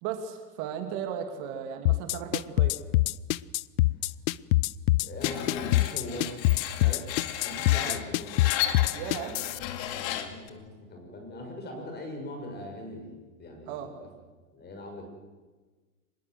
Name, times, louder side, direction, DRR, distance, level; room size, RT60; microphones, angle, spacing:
voice 1, 0.0-2.7 7.7-8.0 8.9-9.3 13.7-13.9, right 8 dB, 45° right, 5 dB, 2.8 m, -36 dB
sound 1, 1.9-9.6, left 18 dB, 60° left, 0.7 m, -24 dB
voice 2, 5.0-8.5 9.0-9.4 9.9-13.1 13.4-14.1 14.5-15.0, left 1 dB, 20° left, 3 dB, 6.6 m, -41 dB
Screech, 5.2-10.5, left 11 dB, 45° left, 2.4 m, -34 dB
24.5 x 21.0 x 7.9 m, 1.3 s
hypercardioid pair, 135°, 47 cm